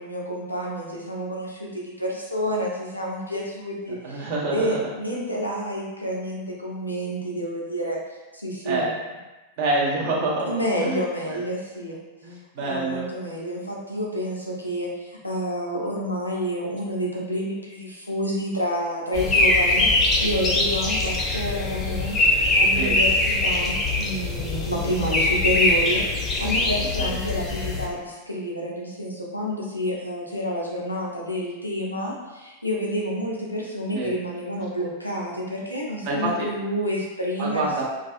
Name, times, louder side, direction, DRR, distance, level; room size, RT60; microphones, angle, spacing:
voice 1, 0.0-8.0 8.3-8.9 10.5-12.0 12.6-22.2 22.5-37.8, equal, 85° left, -3 dB, 0.5 m, -29 dB
voice 2, 3.9-4.8 8.6-8.9 9.6-11.0 11.3-11.4 12.2-13.1 22.7-23.0 27.0-27.2 33.9-34.1 36.0-36.5 37.4-37.8, right 2 dB, 50° right, -3 dB, 0.6 m, -27 dB
sound 1, 19.1-27.9, left 2 dB, 20° left, 0.5 m, -22 dB
2.4 x 2.3 x 2.4 m, 1.1 s
figure-of-eight pair, 90°, 0 cm